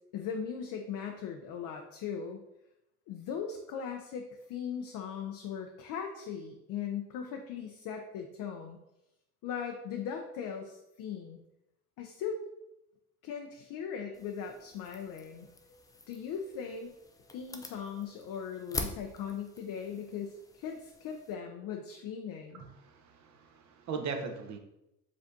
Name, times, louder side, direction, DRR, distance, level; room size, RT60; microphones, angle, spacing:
voice 1, 0.1-2.4 3.1-8.8 9.4-11.4 12.0-12.5 13.2-15.5 16.1-16.9 17.3-22.6, left 7 dB, 50° left, 3 dB, 0.6 m, -39 dB
sound 1, 14.1-21.3, left 3 dB, 10° left, 0.3 m, -45 dB
voice 2, 22.5-24.6, right 5 dB, 40° right, 4 dB, 0.8 m, -39 dB
5.1 x 3.3 x 2.7 m, 0.87 s
hypercardioid pair, 70°, 44 cm